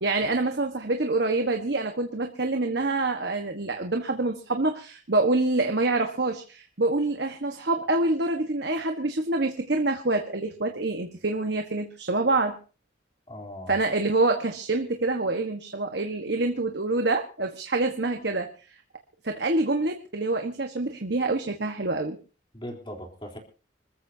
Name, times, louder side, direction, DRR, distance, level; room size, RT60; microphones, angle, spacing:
voice 1, 0.0-12.6 13.7-18.5 19.2-22.2, right 2 dB, 65° right, 4 dB, 1.4 m, -26 dB
voice 2, 13.3-13.8 22.5-23.4, equal, 25° left, 2 dB, 3.6 m, -39 dB
26.5 x 14.0 x 2.8 m, 0.36 s
head